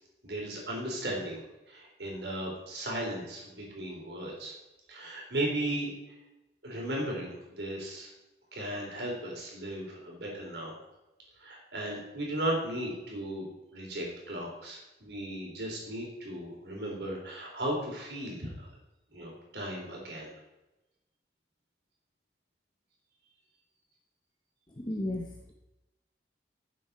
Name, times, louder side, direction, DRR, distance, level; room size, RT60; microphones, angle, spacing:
voice 1, 0.2-4.5 4.9-5.9 6.6-8.1 8.5-10.7 11.4-18.7 19.1-20.3, right 1 dB, 70° right, -2 dB, 3.6 m, -36 dB
voice 2, 24.7-25.5, left 1 dB, 25° left, 1 dB, 0.8 m, -34 dB
12.0 x 7.0 x 4.2 m, 0.97 s
head